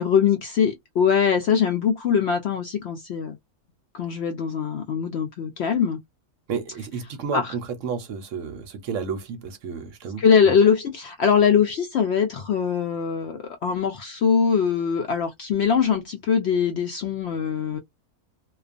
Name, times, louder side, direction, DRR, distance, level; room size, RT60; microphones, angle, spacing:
voice 1, 0.0-3.4 3.9-6.0 7.3-7.5 10.2-17.8, left 7 dB, 65° left, 0.6 m, -22 dB
voice 2, 6.5-10.5, right 6 dB, 65° right, 0.9 m, -32 dB
2.3 x 2.3 x 2.4 m
omnidirectional pair, 1.5 m